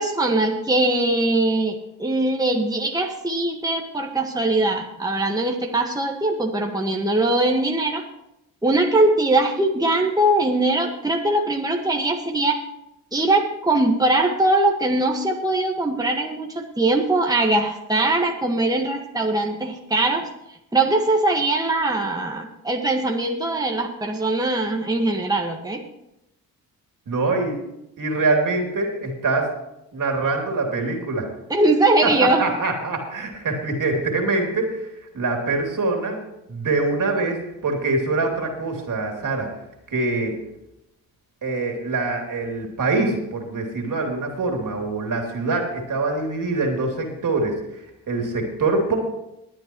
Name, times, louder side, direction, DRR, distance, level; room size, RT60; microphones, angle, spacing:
voice 1, 0.0-8.0 8.6-12.6 13.1-20.3 20.7-25.8 31.5-32.4, right 2 dB, 10° right, 1 dB, 1.6 m, -21 dB
voice 2, 27.1-27.6 28.0-29.5 29.9-31.3 32.0-36.2 36.5-39.5 39.9-40.4 41.4-47.6 48.1-49.0, right 3 dB, 55° right, 2 dB, 3.1 m, -24 dB
21.0 x 9.4 x 3.1 m, 0.86 s
supercardioid pair, 55°, 38 cm